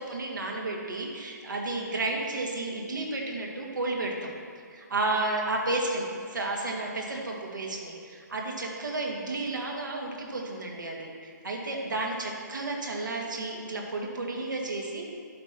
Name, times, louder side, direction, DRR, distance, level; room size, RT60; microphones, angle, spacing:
voice 1, 0.0-4.3 4.7-15.1, right 2 dB, 80° right, -1 dB, 2.1 m, -32 dB
11.0 x 6.2 x 4.3 m, 2.2 s
hypercardioid pair, 150°, 10 cm